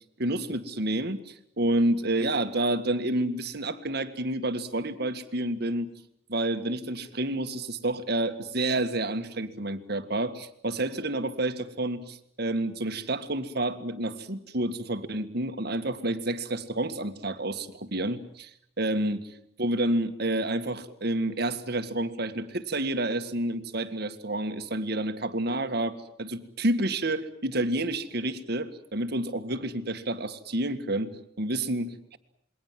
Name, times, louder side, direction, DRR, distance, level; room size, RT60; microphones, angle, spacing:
voice 1, 0.2-5.9 6.3-18.5 18.8-19.2 19.6-32.2, right 1 dB, 55° right, 9 dB, 1.8 m, -29 dB
28.0 x 22.5 x 7.6 m, 0.73 s
head